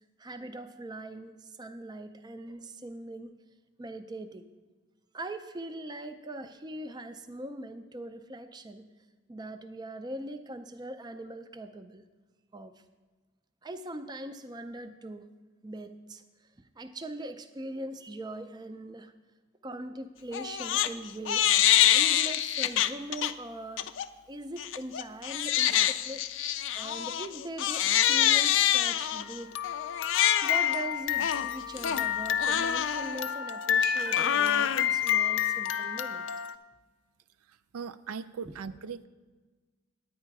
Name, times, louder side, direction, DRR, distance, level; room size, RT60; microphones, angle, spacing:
voice 1, 0.2-3.3 3.8-4.5 5.1-8.9 9.3-12.0 12.5-12.7 13.6-15.3 15.6-16.2 16.8-19.1 19.6-21.5 21.9-24.0 24.3-26.3 26.7-29.5 30.4-36.4 38.4-38.6, right 1 dB, 20° right, 9 dB, 0.4 m, -41 dB
Crying sobbing, 20.3-20.9 21.3-23.3 23.8-24.1 24.6-36.5, left 11 dB, 55° left, 0.3 m, -26 dB
voice 2, 37.5-39.1, right 6 dB, 85° right, 13 dB, 0.4 m, -39 dB
9.8 x 9.3 x 4.7 m, 1.3 s
head